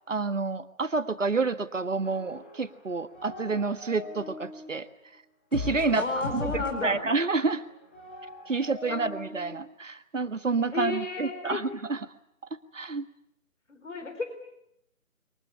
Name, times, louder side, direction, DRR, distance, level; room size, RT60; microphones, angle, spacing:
voice 1, 0.1-4.9 5.5-6.1 6.3-7.6 8.5-12.1 12.7-13.0, right 4 dB, 60° right, 12 dB, 1.6 m, -29 dB
sound 1, 2.0-2.8 3.0-4.7 5.5-9.6, left 3 dB, 10° left, 1.3 m, -40 dB
voice 2, 5.9-7.0 8.9-9.0 10.7-11.6 13.7-14.2, left 3 dB, 55° left, 7 dB, 4.1 m, -32 dB
23.5 x 20.0 x 9.7 m, 0.79 s
figure-of-eight pair, 155°, 43 cm